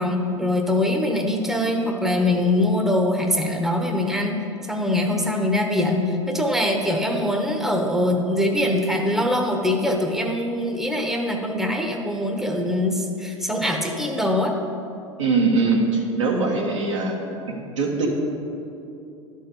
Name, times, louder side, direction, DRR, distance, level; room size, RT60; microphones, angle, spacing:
voice 1, 0.0-4.3 4.7-14.5, left 1 dB, ahead, 2 dB, 1.0 m, -23 dB
voice 2, 15.2-17.2 17.5-18.1, right 3 dB, 80° right, -1 dB, 1.4 m, -22 dB
12.0 x 4.6 x 5.2 m, 2.7 s
hypercardioid pair, 80°, 16 cm